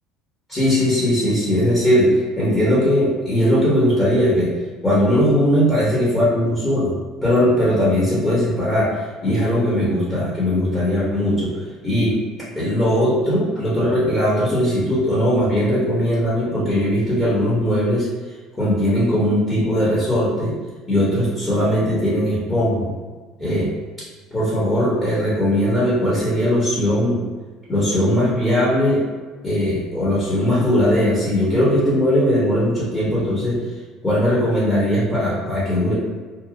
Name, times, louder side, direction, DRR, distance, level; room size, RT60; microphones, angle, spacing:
voice 1, 0.5-4.5 4.8-6.9 7.2-11.5 11.8-12.2 12.6-18.1 18.6-20.6 20.9-22.9 23.4-23.7 24.3-27.2 27.7-29.0 29.4-33.6 34.0-35.9, equal, 15° left, -9 dB, 1.0 m, -19 dB
2.7 x 2.2 x 2.8 m, 1.4 s
supercardioid pair, 90°, 0 cm